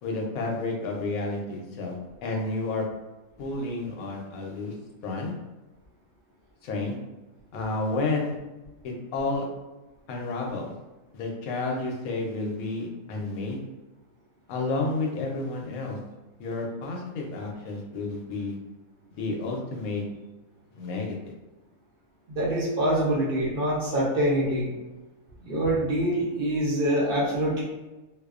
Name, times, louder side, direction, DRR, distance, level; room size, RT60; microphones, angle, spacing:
voice 1, 0.0-2.0 2.2-2.8 3.4-4.7 5.0-5.3 6.6-7.0 7.5-8.3 8.8-9.5 10.1-10.7 11.1-13.6 14.5-16.0 16.4-18.6 19.1-20.0 20.8-21.2, left 3 dB, 85° left, 0 dB, 1.0 m, -30 dB
voice 2, 22.3-24.7 25.4-27.6, right 1 dB, 55° right, -5 dB, 0.6 m, -25 dB
2.5 x 2.0 x 2.3 m, 1.1 s
omnidirectional pair, 1.5 m